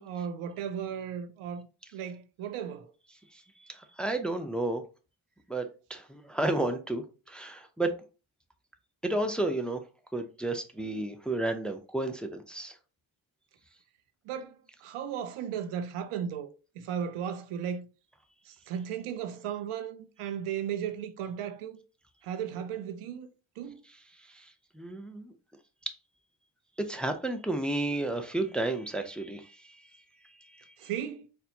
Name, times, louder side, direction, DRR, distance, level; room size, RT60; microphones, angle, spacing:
voice 1, 0.0-1.7 1.9-2.9 14.3-16.5 16.8-17.9 18.5-21.8 22.2-23.3 23.6-23.8 30.8-31.3, right 8 dB, 85° right, 0.6 m, -35 dB
voice 2, 3.3-4.8 5.5-7.9 9.0-9.8 10.1-12.8 23.9-25.3 25.9-26.0 26.8-29.9 30.2-30.9, right 2 dB, ahead, 0.5 m, -32 dB
4.2 x 2.2 x 2.7 m
cardioid pair, 65°, 50 cm